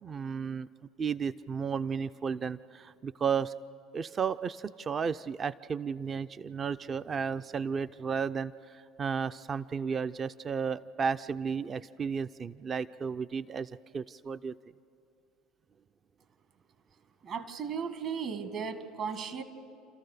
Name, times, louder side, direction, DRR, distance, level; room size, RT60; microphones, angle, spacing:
voice 1, 0.0-0.7 1.0-3.5 3.9-14.6, right 6 dB, 35° right, 13 dB, 0.4 m, -33 dB
voice 2, 17.2-19.4, right 6 dB, 55° right, 9 dB, 1.8 m, -36 dB
29.5 x 14.0 x 6.7 m, 2.6 s
hypercardioid pair, 75°, 0 cm